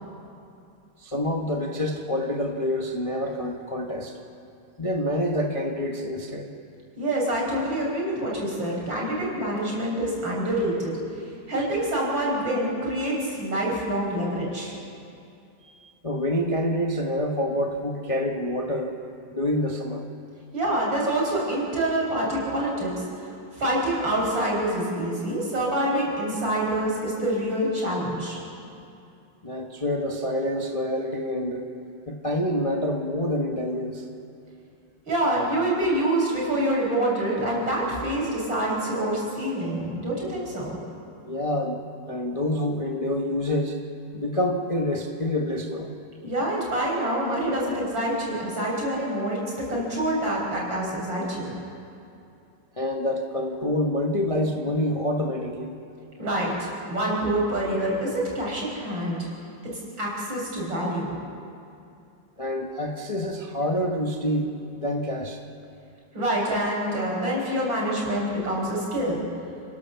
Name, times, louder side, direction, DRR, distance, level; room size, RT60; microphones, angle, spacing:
voice 1, 1.0-4.2 4.8-6.5 15.6-18.9 19.3-20.1 29.4-31.7 32.1-34.0 41.3-43.8 44.1-45.9 52.8-55.8 62.4-65.4, left 1 dB, 20° left, 1 dB, 1.1 m, -27 dB
voice 2, 7.0-14.8 20.5-28.4 35.1-40.8 46.2-51.5 56.2-59.2 59.7-61.2 66.1-69.2, right 1 dB, 55° right, -3 dB, 6.5 m, -26 dB
28.5 x 16.5 x 7.0 m, 2.5 s
omnidirectional pair, 2.4 m